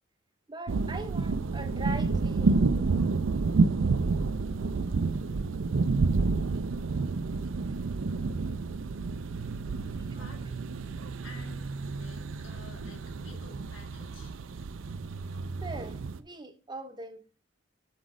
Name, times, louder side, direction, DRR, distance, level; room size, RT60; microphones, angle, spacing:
voice 1, 0.5-2.9 10.1-10.2 15.6-17.2, right 2 dB, 20° right, 0.7 m, -41 dB
sound 1, 0.7-16.2, right 4 dB, 80° right, 0.5 m, -29 dB
voice 2, 9.8-10.7 11.2-14.3, left 2 dB, 80° left, 1.8 m, -52 dB
6.2 x 6.0 x 4.8 m
head